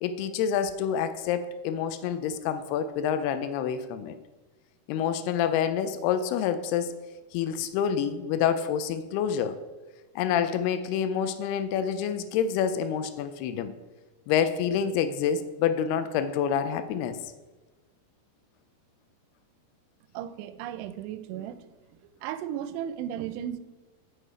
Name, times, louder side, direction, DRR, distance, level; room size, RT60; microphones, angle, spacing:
voice 1, 0.0-4.1 4.9-7.0 7.3-9.6 10.2-13.7 14.3-17.2, left 8 dB, 85° left, 11 dB, 2.5 m, -27 dB
voice 2, 20.1-21.6 22.2-23.6, right 10 dB, 90° right, 13 dB, 2.6 m, -35 dB
7.8 x 6.2 x 4.9 m, 1.2 s
omnidirectional pair, 4.7 m